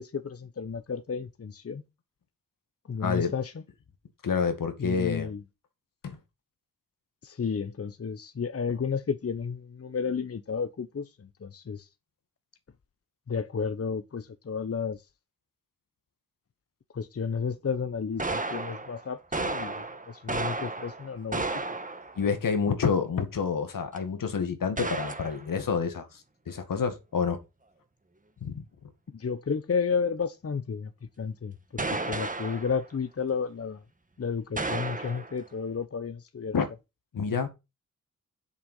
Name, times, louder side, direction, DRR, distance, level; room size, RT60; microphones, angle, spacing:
voice 1, 0.0-1.8 2.9-3.5 4.8-5.4 7.2-11.9 13.3-15.0 16.9-21.5 29.1-30.9 31.2-33.8 34.2-36.6, left 6 dB, 45° left, 1.0 m, -32 dB
voice 2, 3.0-3.3 4.2-5.3 6.0-6.2 22.2-27.4 28.4-28.6 36.5-36.7 37.1-37.5, left 6 dB, 75° left, 2.1 m, -28 dB
sound 1, 18.2-22.3 24.0-24.1 24.8-25.4 31.8-32.8 34.6-35.4, right 3 dB, 25° right, 1.6 m, -33 dB
7.8 x 6.8 x 5.6 m
cardioid pair, 45°, 33 cm